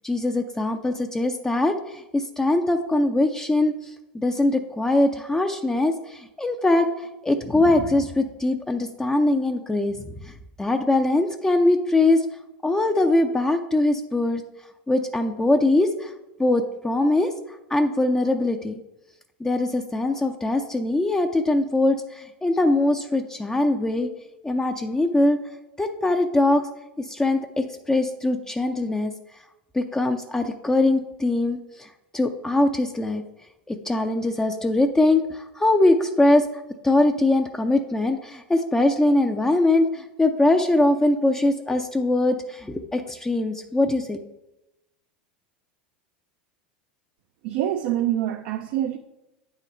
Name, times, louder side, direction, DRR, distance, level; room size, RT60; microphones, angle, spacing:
voice 1, 0.0-10.3 10.6-12.3 12.6-14.4 14.9-16.1 16.4-18.8 19.4-24.1 24.4-25.4 25.8-26.7 27.0-29.1 29.7-31.9 32.1-33.2 33.7-36.5 36.8-44.2, left 2 dB, 10° left, 0.5 m, -22 dB
voice 2, 47.4-49.0, right 12 dB, 60° right, 0.4 m, -25 dB
8.9 x 3.8 x 4.3 m
hypercardioid pair, 90°, 6 cm